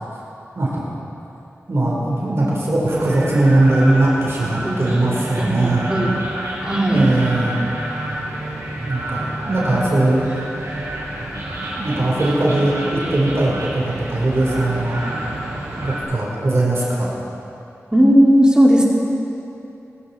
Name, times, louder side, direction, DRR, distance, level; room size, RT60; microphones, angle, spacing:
voice 1, 1.7-5.8 6.9-7.6 8.9-10.2 11.8-15.0 15.8-17.1, right 2 dB, 55° right, -5 dB, 4.0 m, -19 dB
sound 1, 2.9-16.0, right 1 dB, 80° right, 3.9 m, -29 dB
voice 2, 5.4-6.1 6.6-7.1 17.9-18.8, equal, 15° right, -3 dB, 2.7 m, -15 dB
20.0 x 13.0 x 4.4 m, 2.8 s
wide cardioid pair, 60°, 5 cm